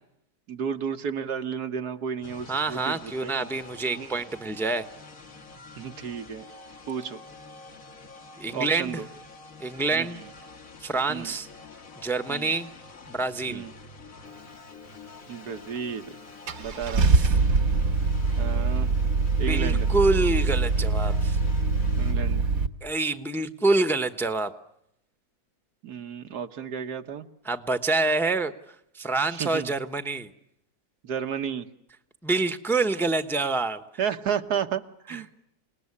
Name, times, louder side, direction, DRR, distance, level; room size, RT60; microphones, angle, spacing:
voice 1, 0.5-3.5 3.9-4.2 5.8-6.4 6.9-7.2 8.5-9.1 9.9-10.2 11.1-11.4 12.3-12.5 13.5-13.7 15.3-16.2 16.6-17.2 18.4-18.9 19.4-19.9 22.0-22.4 25.8-27.3 29.3-29.7 31.0-31.7 34.0-35.4, right 7 dB, 80° right, 8 dB, 1.8 m, -32 dB
sound 1, 2.2-22.1, left 4 dB, 60° left, 2.2 m, -46 dB
voice 2, 2.5-4.9 8.4-9.0 9.6-10.2 10.8-11.5 12.0-12.7 13.1-13.7 17.1-17.3 19.4-21.4 22.8-24.5 27.4-28.5 28.9-30.3 32.2-33.8 35.1-35.2, right 3 dB, ahead, 10 dB, 0.9 m, -26 dB
Car / Engine starting, 15.8-15.9 16.5-22.7, right 4 dB, 65° right, 1.6 m, -23 dB
28.5 x 19.5 x 9.8 m, 0.80 s
omnidirectional pair, 1.7 m